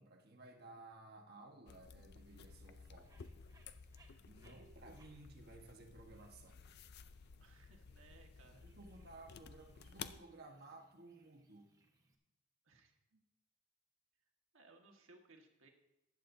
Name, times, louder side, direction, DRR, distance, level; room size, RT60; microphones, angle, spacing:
voice 1, 0.0-3.3 4.2-6.7 8.5-11.7, right 2 dB, 45° right, 3 dB, 1.3 m, -57 dB
sound 1, 1.7-10.2, left 6 dB, 50° left, 0.4 m, -55 dB
Bird, 2.2-12.2, right 2 dB, 15° right, 1.1 m, -74 dB
voice 2, 7.4-8.7 12.6-13.2 14.5-15.7, right 3 dB, 65° right, 2 dB, 1.5 m, -64 dB
15.0 x 10.5 x 2.7 m, 0.88 s
head